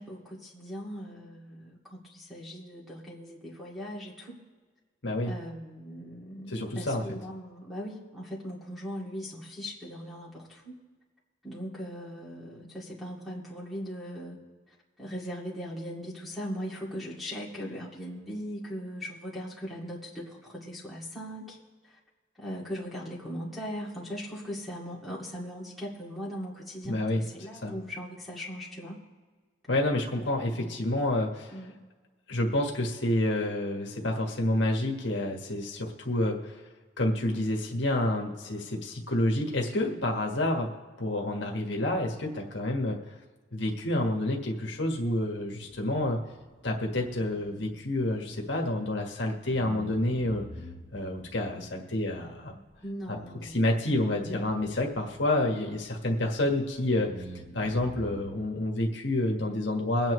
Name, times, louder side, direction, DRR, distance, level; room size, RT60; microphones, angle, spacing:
voice 1, 0.0-4.4 5.3-10.7 11.4-14.4 15.0-21.6 21.8-22.0 22.4-29.0 30.2-30.8 31.5-31.8 52.8-53.6, equal, ahead, -5 dB, 2.3 m, -39 dB
voice 2, 5.0-5.3 6.5-7.2 26.8-27.7 29.7-31.6 32.3-36.6 37.0-40.7 41.0-43.0 43.5-46.2 46.6-50.4 50.9-52.5 53.1-57.1 57.5-60.1, left 1 dB, 70° left, 0 dB, 1.5 m, -29 dB
sound 1, 45.4-49.1 49.5-56.6 57.0-58.3, equal, 60° right, 3.2 m, -48 dB
23.0 x 8.9 x 3.2 m, 1.4 s
head